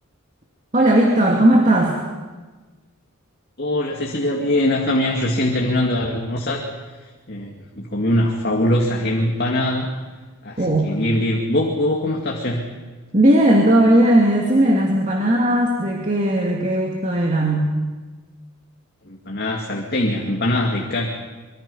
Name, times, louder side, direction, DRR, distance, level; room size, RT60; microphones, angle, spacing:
voice 1, 0.7-1.9 10.6-10.8 13.1-17.7, right 1 dB, 35° right, -1 dB, 2.4 m, -17 dB
voice 2, 3.6-6.6 7.3-9.9 10.4-12.6 19.1-21.1, left 1 dB, 45° left, 0 dB, 2.2 m, -22 dB
25.0 x 23.5 x 5.6 m, 1.3 s
head